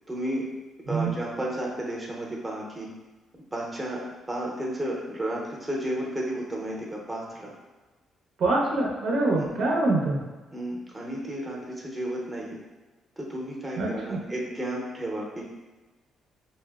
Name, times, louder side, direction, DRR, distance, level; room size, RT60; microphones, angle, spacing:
voice 1, 0.1-0.5 0.9-2.9 3.5-4.0 4.3-7.5 9.4-9.5 10.5-12.6 13.2-15.4, right 1 dB, 15° right, -3 dB, 0.7 m, -32 dB
voice 2, 8.4-10.2 13.8-14.2, right 2 dB, 75° right, -3 dB, 0.7 m, -25 dB
4.2 x 2.0 x 2.3 m, 1.2 s
cardioid pair, 90°, 0 cm